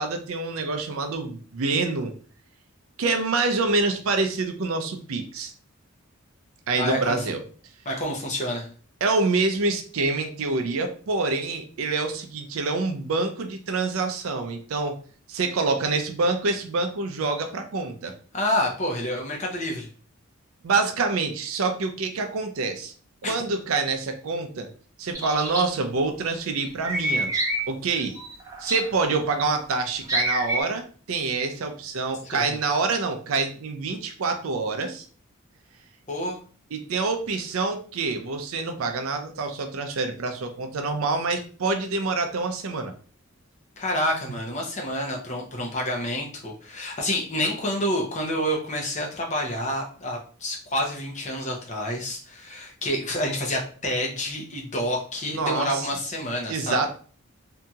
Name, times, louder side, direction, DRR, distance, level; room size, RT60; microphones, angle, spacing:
voice 1, 0.0-2.1 3.0-5.5 6.7-7.4 9.0-15.0 15.3-18.1 20.6-22.9 23.2-24.7 25.0-27.3 27.7-28.2 28.6-35.0 36.7-42.9 55.3-55.9 56.5-56.9, right 3 dB, 75° right, 6 dB, 0.5 m, -26 dB
voice 2, 6.8-7.2 7.9-8.7 18.3-19.9 23.2-23.3 32.3-32.6 36.1-36.4 43.8-56.8, left 1 dB, 35° left, 0 dB, 0.6 m, -28 dB
sound 1, 25.1-25.6 26.8-27.6 27.9-29.1 30.1-30.6, right 1 dB, 15° right, 0.6 m, -27 dB
2.8 x 2.7 x 2.3 m, 0.41 s
head